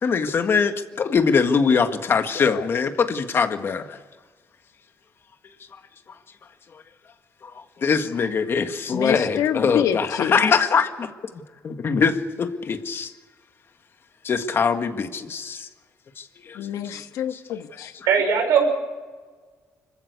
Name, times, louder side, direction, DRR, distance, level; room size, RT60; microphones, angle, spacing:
voice 1, 0.0-4.0 7.8-11.1 11.6-13.1 14.2-15.7 16.5-16.6, left 5 dB, 45° left, 7 dB, 1.8 m, -22 dB
voice 2, 2.3-2.7 8.9-10.4 16.5-17.9, left 9 dB, 80° left, 8 dB, 1.5 m, -27 dB
voice 3, 18.1-18.7, right 6 dB, 80° right, 4 dB, 5.7 m, -19 dB
25.5 x 15.0 x 8.3 m, 1.4 s
cardioid pair, 110°, 6 cm